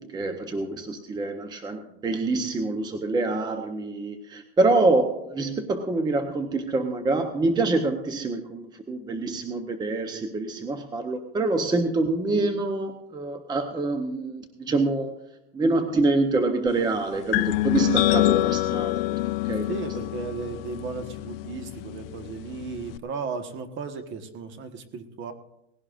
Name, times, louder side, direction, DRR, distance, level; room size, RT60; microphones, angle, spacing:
voice 1, 0.0-15.2 15.5-19.0 19.4-19.7, right 2 dB, 15° right, 6 dB, 0.8 m, -26 dB
sound 1, 17.3-23.0, left 18 dB, 60° left, 0.6 m, -26 dB
voice 2, 19.7-25.3, right 5 dB, 35° right, 7 dB, 1.4 m, -35 dB
19.5 x 16.0 x 2.5 m, 0.84 s
supercardioid pair, 130°, 33 cm